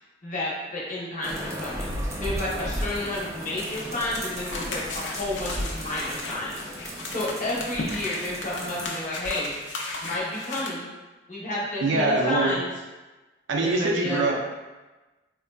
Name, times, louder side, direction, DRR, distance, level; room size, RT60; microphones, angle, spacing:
voice 1, 0.2-1.9 2.2-9.5 10.0-10.9 11.3-12.7 13.6-14.2, left 1 dB, 40° left, -5 dB, 0.7 m, -31 dB
sound 1, 1.2-8.9, equal, 15° right, 0.3 m, -35 dB
sound 2, 3.6-10.7, left 2 dB, 70° left, 0.5 m, -36 dB
voice 2, 11.8-12.6 13.5-14.4, right 2 dB, 75° right, 0 dB, 0.5 m, -23 dB
3.7 x 2.2 x 2.2 m, 1.2 s
head